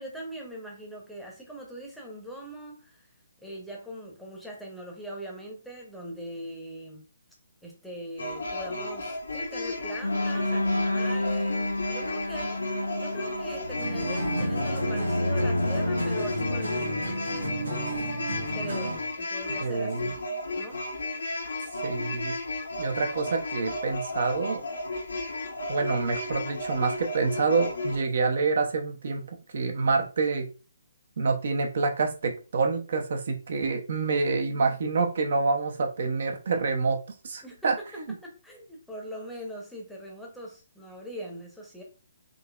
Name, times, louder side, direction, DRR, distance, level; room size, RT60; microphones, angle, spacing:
voice 1, 0.0-3.1 3.4-7.0 7.6-12.6 12.9-17.0 18.5-20.2 20.6-20.8 37.4-41.8, right 1 dB, ahead, -1 dB, 0.8 m, -41 dB
sound 1, 8.2-28.0, left 2 dB, 65° left, 0.8 m, -34 dB
sound 2, 10.0-16.6, left 1 dB, 80° left, 0.3 m, -29 dB
sound 3, 13.8-19.1, equal, 85° right, 1.3 m, -33 dB
voice 2, 19.6-20.1 21.8-22.4 22.8-24.6 25.7-29.2 29.5-30.5 31.2-38.0, right 4 dB, 50° right, 4 dB, 0.6 m, -27 dB
3.8 x 2.8 x 2.3 m, 0.34 s
figure-of-eight pair, 135°, 0 cm